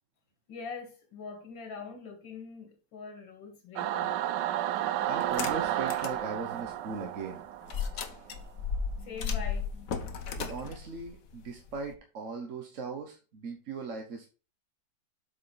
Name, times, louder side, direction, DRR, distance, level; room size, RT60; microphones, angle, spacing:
voice 1, 0.5-4.1 9.0-9.9, left 5 dB, 75° left, 2.5 m, -43 dB
Singing / Musical instrument, 3.8-8.4, right 12 dB, 75° right, 1.1 m, -32 dB
voice 2, 5.1-7.4 10.4-14.3, right 4 dB, 50° right, 1.1 m, -39 dB
sound 1, 5.2-6.2 6.7-6.8 7.7-11.9, left 6 dB, 55° left, 1.1 m, -35 dB
7.7 x 5.6 x 3.9 m
omnidirectional pair, 2.1 m